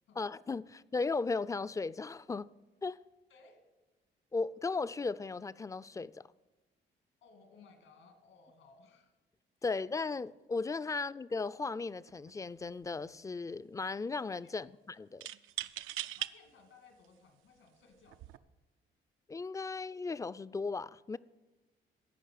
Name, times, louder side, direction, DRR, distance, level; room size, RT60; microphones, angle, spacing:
voice 1, 0.2-2.5 2.8-3.0 4.3-6.2 9.6-15.3 19.3-21.2, left 4 dB, 15° left, 0.3 m, -36 dB
voice 2, 3.3-3.6 7.2-9.2 10.9-11.0 14.4-14.5 16.1-18.4, left 4 dB, 80° left, 2.2 m, -61 dB
sound 1, 12.1-12.3 12.6-13.3 15.2-16.3 17.0-17.1 18.0-18.4, right 13 dB, 85° right, 0.5 m, -40 dB
15.0 x 5.4 x 8.4 m
cardioid pair, 90°, 20 cm